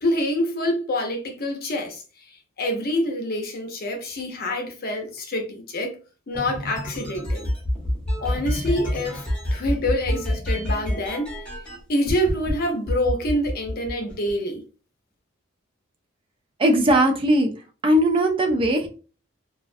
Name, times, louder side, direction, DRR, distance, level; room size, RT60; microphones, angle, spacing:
voice 1, 0.0-2.0 2.6-6.0 6.3-7.5 8.2-11.3 11.9-14.6, left 1 dB, 50° left, 0.6 m, -26 dB
sound 1, 6.3-11.8 12.1-12.5 12.9-14.3, equal, 5° left, 0.9 m, -27 dB
voice 2, 16.6-17.5 17.8-18.9, right 1 dB, 25° right, 0.4 m, -19 dB
2.3 x 2.1 x 2.5 m
head